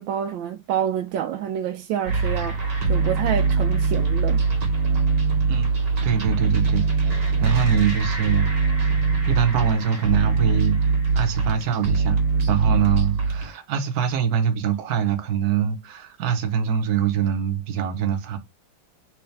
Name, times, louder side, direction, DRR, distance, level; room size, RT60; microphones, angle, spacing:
voice 1, 0.0-4.4, right 9 dB, 75° right, 1.2 m, -28 dB
sound 1, 2.1-13.5, right 4 dB, 35° right, 1.2 m, -22 dB
voice 2, 6.0-8.5 9.3-18.4, right 8 dB, 55° right, 1.2 m, -24 dB
4.6 x 3.5 x 3.2 m
omnidirectional pair, 2.2 m